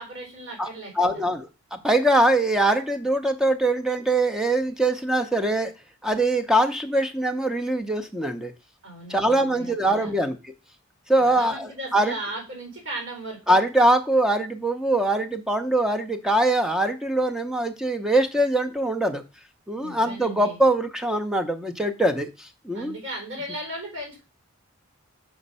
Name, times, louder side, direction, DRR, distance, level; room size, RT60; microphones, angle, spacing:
voice 1, 0.0-1.2 8.8-10.1 11.2-13.6 19.8-20.6 22.7-24.2, right 1 dB, 65° right, 1 dB, 4.0 m, -37 dB
voice 2, 1.0-5.7 6.0-8.5 9.1-10.5 11.1-12.2 13.5-19.2 19.7-23.0, right 1 dB, 5° right, 7 dB, 0.6 m, -23 dB
6.0 x 5.2 x 5.4 m, 0.29 s
head